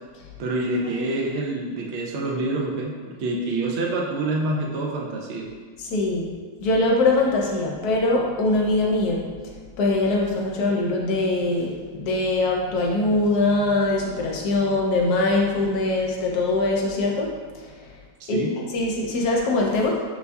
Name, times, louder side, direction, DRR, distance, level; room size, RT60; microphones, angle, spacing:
voice 1, 0.4-5.5 18.2-18.5, right 2 dB, 70° right, -1 dB, 0.6 m, -27 dB
voice 2, 5.8-6.3 6.6-9.3 9.8-17.3 18.3-18.4 18.7-20.0, left 2 dB, 70° left, -1 dB, 1.1 m, -22 dB
6.8 x 2.7 x 2.2 m, 1.5 s
omnidirectional pair, 1.9 m